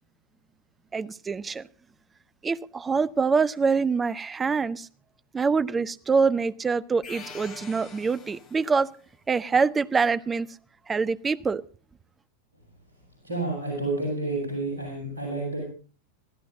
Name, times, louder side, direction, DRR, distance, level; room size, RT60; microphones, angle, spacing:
voice 1, 0.9-1.7 2.4-4.9 5.3-8.9 9.3-10.5 10.9-11.6, right 5 dB, 15° right, 0.7 m, -25 dB
sound 1, 7.0-8.9, left 5 dB, 30° left, 3.2 m, -44 dB
voice 2, 13.2-15.7, right 2 dB, 75° right, 7.9 m, -30 dB
26.5 x 14.5 x 2.6 m
figure-of-eight pair, 90°, 0 cm